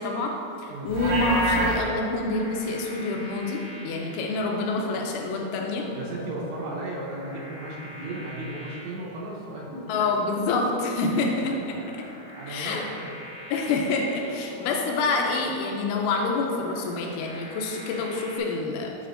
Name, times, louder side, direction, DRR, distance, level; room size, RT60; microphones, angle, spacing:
voice 1, 0.0-5.9 9.9-11.8 12.5-12.8 13.5-19.0, left 3 dB, 85° left, 1 dB, 3.0 m, -27 dB
voice 2, 0.7-1.0 5.9-10.0 11.1-11.3 12.0-13.1, right 2 dB, 80° right, -4 dB, 3.1 m, -36 dB
sound 1, 0.9-18.4, left 1 dB, 65° left, 2.6 m, -44 dB
Livestock farm animals working animals, 0.9-1.8, equal, 60° right, 2.0 m, -25 dB
8.1 x 5.7 x 2.5 m, 2.7 s
omnidirectional pair, 5.4 m